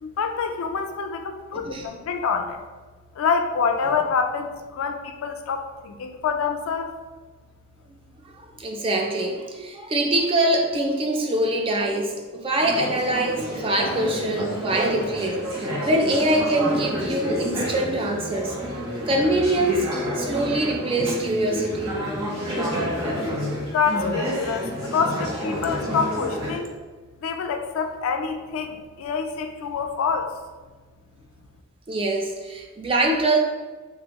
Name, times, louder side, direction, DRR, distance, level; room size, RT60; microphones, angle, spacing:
voice 1, 0.0-2.6 3.2-6.9 23.6-26.8 27.2-30.3, left 5 dB, 75° left, 6 dB, 0.3 m, -26 dB
voice 2, 1.5-1.9 8.6-18.6 19.1-19.9 20.2-22.0 31.9-33.4, right 1 dB, 25° right, 2 dB, 0.3 m, -24 dB
Conversation / Chatter, 12.6-26.6, equal, 65° right, 1.2 m, -29 dB
3.0 x 2.5 x 2.8 m, 1.3 s
head